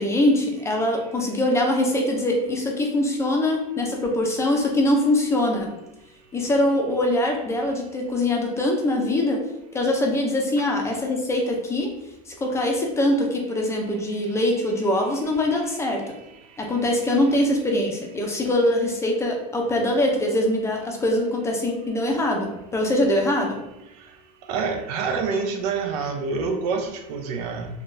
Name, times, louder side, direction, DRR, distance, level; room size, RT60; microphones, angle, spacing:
voice 1, 0.0-5.7 6.3-9.4 9.7-11.9 12.4-16.0 16.6-23.6, left 1 dB, 15° left, 1 dB, 0.5 m, -23 dB
voice 2, 24.5-27.7, right 5 dB, 75° right, 5 dB, 0.6 m, -26 dB
3.7 x 2.3 x 2.6 m, 0.89 s
supercardioid pair, 135°, 20 cm